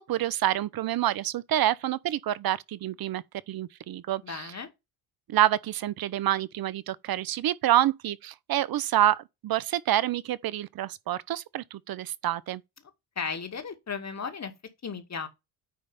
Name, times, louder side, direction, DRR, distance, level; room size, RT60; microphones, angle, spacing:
voice 1, 0.1-4.5 5.3-12.6, right 13 dB, 45° right, 0.7 m, -27 dB
voice 2, 4.2-4.7 13.2-14.5 14.8-15.3, left 5 dB, 35° left, 2.2 m, -35 dB
9.6 x 3.2 x 5.6 m
supercardioid pair, 70°, 48 cm